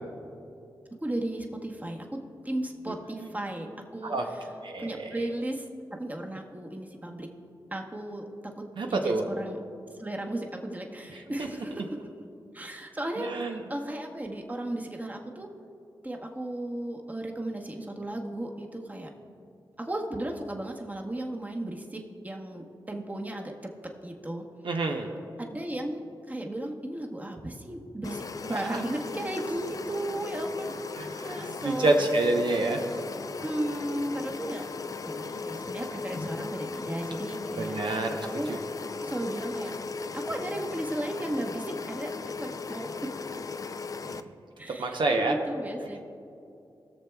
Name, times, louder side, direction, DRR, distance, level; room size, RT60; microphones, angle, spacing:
voice 1, 1.0-4.5 4.8-7.3 7.7-9.6 10.0-12.0 12.5-15.5 16.0-19.1 19.8-24.4 25.4-30.8 31.2-31.9 33.4-34.7 35.1-37.8 38.3-38.5 39.0-39.7 40.1-43.1 44.6-46.0, right 1 dB, 20° right, 2 dB, 1.0 m, -35 dB
voice 2, 4.6-5.2 8.8-9.2 13.2-13.6 24.6-25.1 28.5-28.8 31.0-33.1 37.6-38.6 44.1-44.2 44.8-45.3, right 2 dB, 70° right, 2 dB, 0.7 m, -28 dB
sound 1, 28.0-44.2, left 4 dB, 45° left, 0.4 m, -37 dB
20.0 x 6.7 x 2.3 m, 2.6 s
cardioid pair, 55°, 8 cm